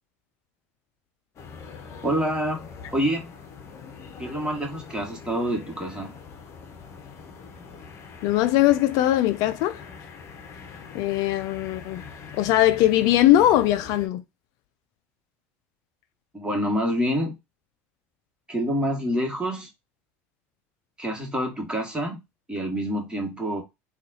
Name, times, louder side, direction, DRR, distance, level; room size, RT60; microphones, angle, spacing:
sound 1, 1.4-14.1, left 5 dB, 40° left, 0.8 m, -43 dB
voice 1, 2.0-3.3 4.2-6.2 16.3-17.4 18.5-19.7 21.0-22.2 22.5-23.6, equal, 10° right, 1.6 m, -27 dB
voice 2, 8.2-9.8 10.9-12.0 12.4-14.2, left 14 dB, 60° left, 0.4 m, -20 dB
4.0 x 2.4 x 2.6 m
hypercardioid pair, 85°, 7 cm